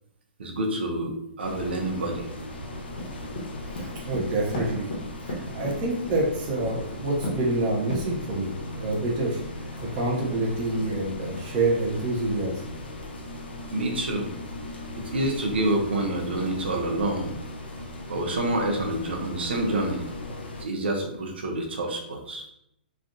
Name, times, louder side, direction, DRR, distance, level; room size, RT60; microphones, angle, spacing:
voice 1, 0.4-2.2 13.7-14.3 15.0-17.3 18.1-20.1 20.6-22.4, right 1 dB, 90° right, 2 dB, 0.8 m, -28 dB
sound 1, 1.4-20.7, left 1 dB, 85° left, 0.6 m, -38 dB
sound 2, 3.0-6.2 6.6-6.9 7.2-7.5 7.9-8.4, left 1 dB, 60° left, 1.1 m, -34 dB
voice 2, 3.7-4.9 5.3-12.6, right 2 dB, 25° right, -3 dB, 0.8 m, -27 dB
3.3 x 2.4 x 2.6 m, 0.76 s
hypercardioid pair, 160°, 6 cm